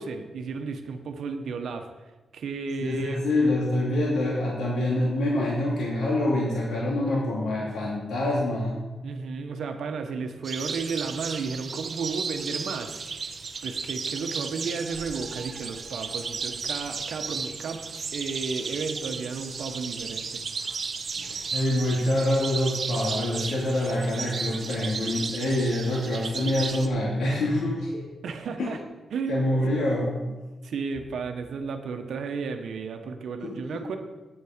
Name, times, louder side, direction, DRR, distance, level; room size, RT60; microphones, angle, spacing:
voice 1, 0.0-1.9 2.3-3.2 9.0-13.0 13.6-17.8 18.1-20.4 28.2-28.8 29.1-29.5 30.6-34.0, right 5 dB, 70° right, 6 dB, 1.1 m, -33 dB
voice 2, 2.8-8.7 21.1-28.0 28.6-28.8 29.3-30.2 33.4-33.8, left 1 dB, 90° left, -5 dB, 2.7 m, -26 dB
sound 1, 10.4-26.9, right 5 dB, 40° right, 0.7 m, -34 dB
9.8 x 9.1 x 5.1 m, 1.2 s
wide cardioid pair, 155°, 0 cm